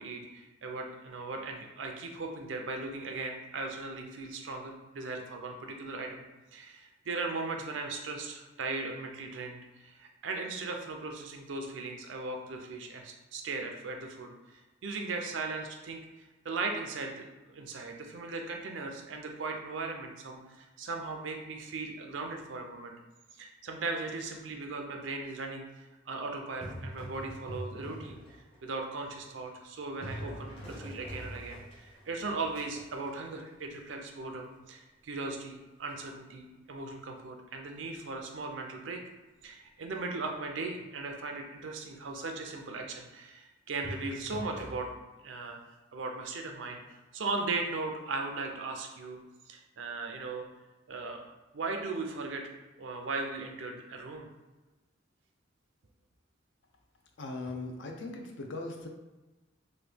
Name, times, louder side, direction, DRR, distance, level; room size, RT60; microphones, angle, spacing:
voice 1, 0.0-6.2 6.5-16.0 16.4-22.9 23.4-25.6 26.1-39.0 39.4-44.9 45.2-45.6 45.9-49.2 49.5-50.5 50.9-51.2 51.5-52.4 52.8-54.3, right 3 dB, 80° right, 3 dB, 0.5 m, -38 dB
sound 1, 26.4-28.6 29.1-34.1 35.9-36.1 43.8-44.8, equal, 30° left, 0.6 m, -44 dB
voice 2, 57.2-58.9, left 2 dB, 70° left, 2 dB, 0.5 m, -39 dB
3.0 x 2.2 x 3.3 m, 1.1 s
head